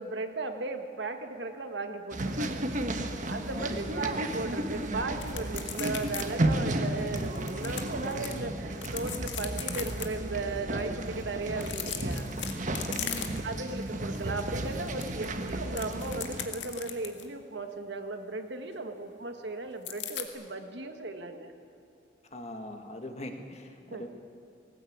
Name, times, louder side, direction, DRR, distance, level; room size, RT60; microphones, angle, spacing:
voice 1, 0.0-2.7 3.3-12.3 13.4-21.5 23.9-24.1, right 3 dB, 70° right, 6 dB, 1.7 m, -36 dB
sound 1, 2.1-16.5, right 1 dB, 40° right, 1.3 m, -33 dB
voice 2, 3.5-3.9 12.9-13.5 22.3-24.1, left 1 dB, 35° left, 4 dB, 1.9 m, -42 dB
sound 2, 5.2-6.2 6.5-6.6 7.2-8.3 8.7-10.1 11.5-13.6 14.0-14.2 14.5-17.3 19.8-20.3, left 9 dB, 75° left, 1.9 m, -38 dB
19.5 x 18.0 x 8.7 m, 2.3 s
head